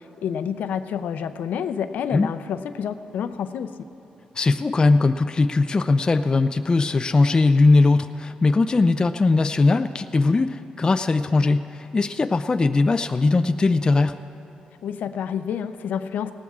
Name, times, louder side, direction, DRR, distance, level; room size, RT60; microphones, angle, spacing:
voice 1, 0.0-3.7 14.8-16.3, left 8 dB, 85° left, 11 dB, 0.5 m, -29 dB
voice 2, 4.4-14.2, left 3 dB, 30° left, 9 dB, 0.3 m, -20 dB
18.5 x 17.5 x 2.4 m, 2.8 s
cardioid pair, 85°, 3 cm